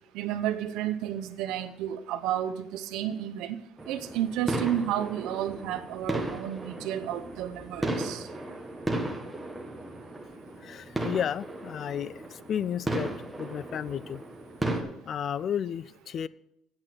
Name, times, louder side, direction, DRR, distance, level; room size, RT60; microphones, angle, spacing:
voice 1, 0.1-3.6 3.9-8.3, right 11 dB, 80° right, 8 dB, 0.7 m, -31 dB
sound 1, 3.8-14.8, right 1 dB, 5° right, 1.2 m, -35 dB
voice 2, 10.6-13.1 13.4-14.2 15.1-16.3, left 9 dB, 40° left, 20 dB, 0.3 m, -32 dB
8.8 x 8.2 x 5.9 m, 0.80 s
cardioid pair, 155°, 0 cm